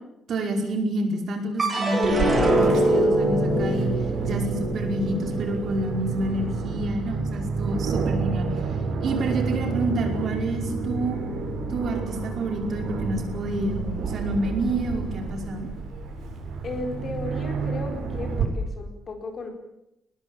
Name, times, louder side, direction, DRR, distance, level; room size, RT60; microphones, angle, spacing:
voice 1, 0.3-3.9 4.2-8.5 9.0-11.2 11.7-15.7, right 1 dB, 45° right, 4 dB, 5.2 m, -28 dB
sound 1, 1.6-8.0 8.5-9.2, right 1 dB, 20° right, 7.7 m, -25 dB
Aircraft, 2.0-18.4, right 4 dB, 65° right, 7.5 m, -30 dB
voice 2, 16.6-19.5, left 3 dB, 35° left, 5 dB, 4.5 m, -35 dB
22.5 x 20.5 x 9.0 m, 0.83 s
cardioid pair, 170°, 0 cm